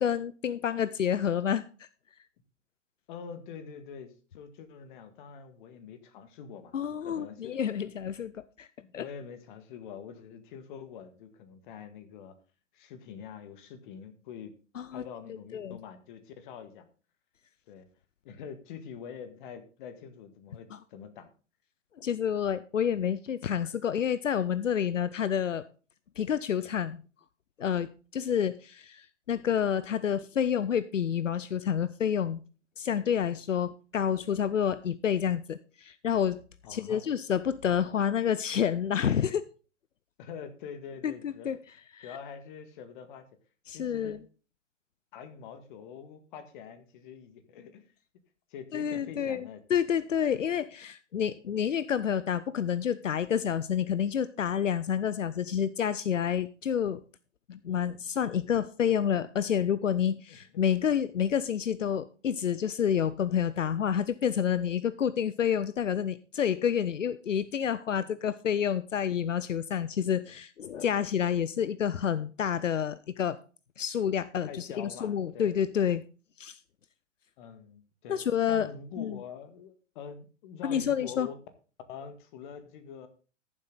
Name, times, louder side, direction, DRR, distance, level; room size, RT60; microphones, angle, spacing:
voice 1, 0.0-1.9 6.7-8.7 8.9-9.0 14.8-15.0 15.5-15.8 20.7-20.8 22.0-25.6 26.2-27.0 27.6-32.4 32.8-36.4 36.7-39.4 41.0-41.6 41.9-42.1 43.7-44.2 48.7-57.0 57.5-73.4 73.8-76.0 76.4-76.6 78.1-78.7 79.0-79.2 80.6-81.3, left 8 dB, 80° left, 16 dB, 0.6 m, -29 dB
voice 2, 3.1-7.8 8.8-12.3 12.7-14.5 14.9-16.9 17.7-17.9 18.2-21.3 36.6-37.0 40.2-41.5 42.0-43.3 43.7-44.2 45.1-47.9 48.5-49.6 60.3-60.6 74.5-75.5 77.4-81.4 81.9-83.1, left 7 dB, 40° left, 10 dB, 1.8 m, -45 dB
13.5 x 7.6 x 3.9 m, 0.37 s
figure-of-eight pair, 115°, 37 cm